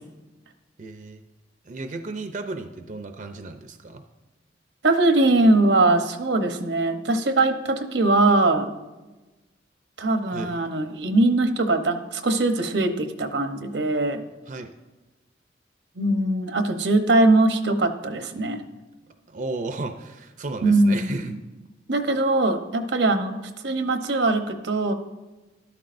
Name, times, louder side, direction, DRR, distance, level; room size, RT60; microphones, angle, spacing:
voice 1, 0.8-1.2 1.7-4.0 10.3-10.5 14.5-14.7 19.3-21.3, right 3 dB, 45° right, 6 dB, 0.5 m, -34 dB
voice 2, 4.8-8.7 10.0-14.2 16.0-18.6 20.6-21.4 21.9-23.4 23.6-24.9, right 2 dB, 85° right, 7 dB, 0.9 m, -21 dB
13.0 x 12.0 x 2.6 m, 1.1 s
head